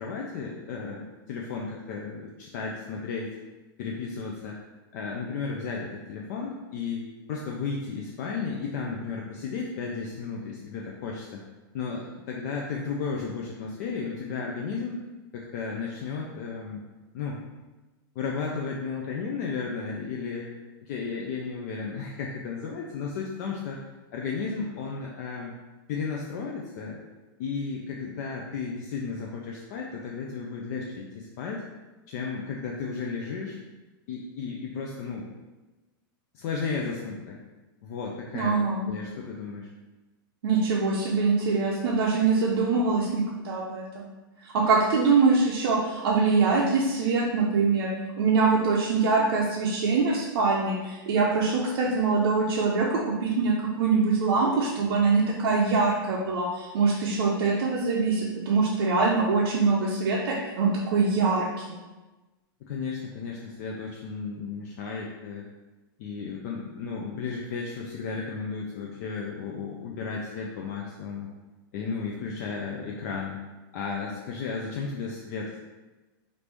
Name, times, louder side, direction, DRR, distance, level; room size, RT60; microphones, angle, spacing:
voice 1, 0.0-3.3 3.8-4.6 4.9-11.4 11.7-15.0 15.3-16.8 17.1-17.4 18.2-20.5 20.8-23.8 24.1-25.5 25.9-27.0 27.4-31.6 32.1-33.6 34.1-35.3 36.3-37.4 37.8-39.7 62.6-65.5 66.0-71.3 71.7-73.4 73.7-75.6, left 5 dB, 45° left, -1 dB, 0.4 m, -34 dB
voice 2, 38.3-38.9 40.4-44.1 44.4-47.9 48.2-61.8, right 4 dB, 80° right, -4 dB, 0.5 m, -24 dB
3.0 x 2.6 x 3.3 m, 1.2 s
supercardioid pair, 165°, 13 cm